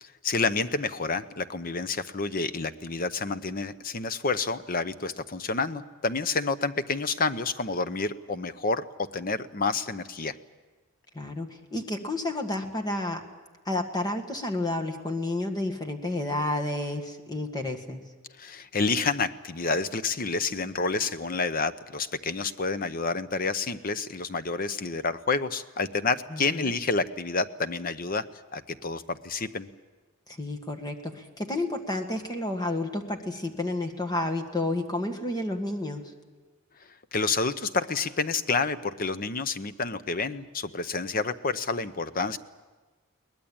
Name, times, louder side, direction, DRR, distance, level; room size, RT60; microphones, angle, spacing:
voice 1, 0.0-8.8 9.1-10.4 18.4-28.2 28.5-29.7 37.1-42.4, left 4 dB, 40° left, 12 dB, 0.8 m, -29 dB
voice 2, 11.1-13.2 13.7-18.0 26.3-26.7 30.3-36.0, left 2 dB, 20° left, 5 dB, 1.8 m, -31 dB
22.0 x 19.5 x 8.8 m, 1.3 s
head